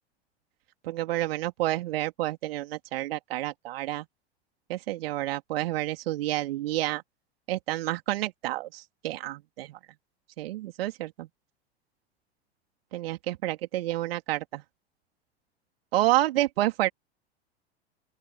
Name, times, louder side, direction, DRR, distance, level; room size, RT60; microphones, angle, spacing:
voice 1, 0.8-4.0 4.7-7.0 7.5-9.8 10.4-11.3 12.9-14.6 15.9-16.9, right 16 dB, 60° right, 3.3 m, -29 dB
open air
figure-of-eight pair, 85°, 33 cm